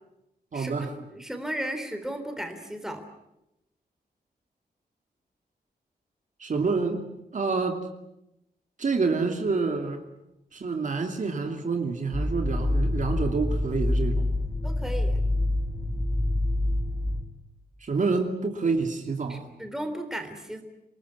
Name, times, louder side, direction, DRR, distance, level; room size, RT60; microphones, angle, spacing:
voice 1, 0.5-0.9 6.4-7.1 7.3-7.8 8.8-10.0 10.5-14.3 17.8-19.5, right 4 dB, 50° right, 5 dB, 2.6 m, -27 dB
voice 2, 1.1-3.0 14.6-15.2 19.3-20.6, right 1 dB, 5° right, 6 dB, 3.5 m, -35 dB
sound 1, 12.1-17.2, left 1 dB, 15° left, 3.4 m, -26 dB
27.5 x 19.0 x 9.6 m, 0.88 s
wide cardioid pair, 135°, 17 cm